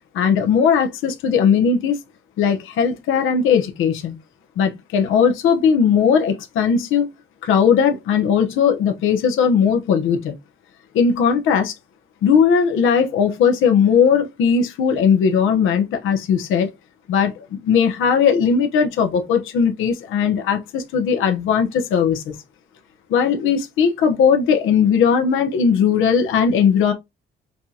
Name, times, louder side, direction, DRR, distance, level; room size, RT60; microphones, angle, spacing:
voice 1, 0.1-2.0 2.4-4.1 4.6-7.1 7.4-10.3 10.9-11.7 12.2-16.7 17.1-22.3 23.1-26.9, left 7 dB, 85° left, 0.9 m, -18 dB
5.7 x 2.4 x 2.8 m
cardioid pair, 90°, 20 cm